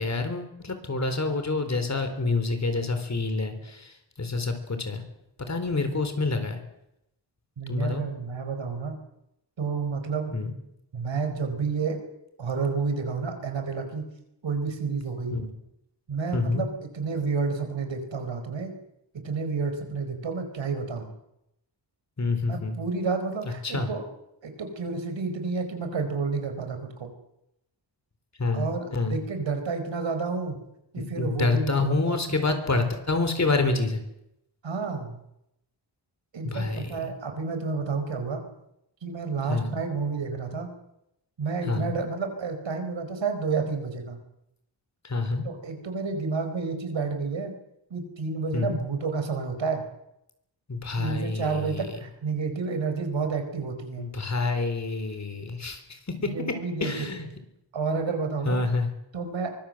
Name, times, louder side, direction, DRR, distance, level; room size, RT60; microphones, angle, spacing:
voice 1, 0.0-5.0 5.4-6.6 7.7-8.0 10.3-10.5 15.3-15.5 16.3-16.7 22.2-22.8 23.6-23.9 28.4-29.2 31.2-34.0 36.4-37.1 39.5-39.8 41.6-42.0 45.0-45.5 48.5-48.8 50.7-51.9 54.0-57.3 58.5-58.9, left 3 dB, 40° left, 8 dB, 4.0 m, -27 dB
voice 2, 7.6-9.0 9.6-10.4 10.9-12.0 12.4-14.1 14.4-15.4 16.1-18.7 19.2-21.1 22.5-24.0 24.4-27.1 28.5-30.6 30.9-32.5 34.6-35.2 36.3-38.4 39.0-40.7 41.4-44.2 45.4-47.5 47.9-49.8 51.0-54.1 56.2-56.9 57.7-58.6 59.1-59.5, right 4 dB, 85° right, 7 dB, 4.7 m, -30 dB
24.0 x 21.5 x 7.8 m, 0.83 s
wide cardioid pair, 150°, 44 cm